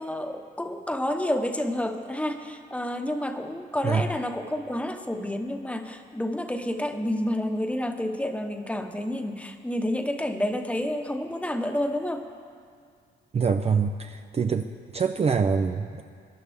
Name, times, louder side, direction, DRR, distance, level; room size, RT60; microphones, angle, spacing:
voice 1, 0.0-12.3, left 1 dB, 5° left, 5 dB, 1.0 m, -29 dB
voice 2, 13.3-14.6 14.9-16.0, right 5 dB, 30° right, 6 dB, 0.5 m, -25 dB
22.5 x 11.0 x 3.6 m, 2.2 s
cardioid pair, 90°, 20 cm